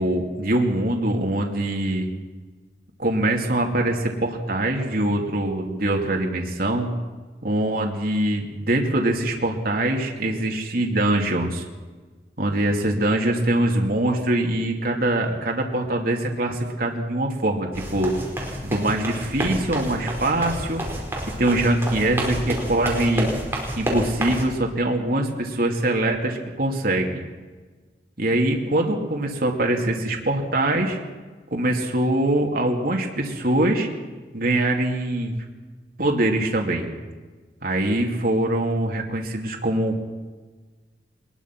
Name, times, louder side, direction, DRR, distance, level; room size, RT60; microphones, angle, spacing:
voice 1, 0.0-2.1 3.0-6.9 7.4-11.6 12.4-18.1 18.6-20.8 21.4-23.3 23.8-27.2 28.2-31.0 31.5-33.9 34.3-35.3 36.0-36.9 37.6-40.0, right 1 dB, 55° right, 1 dB, 2.5 m, -23 dB
sound 1, 17.7-24.4, right 1 dB, 15° right, 4.6 m, -29 dB
22.0 x 21.0 x 6.0 m, 1.3 s
head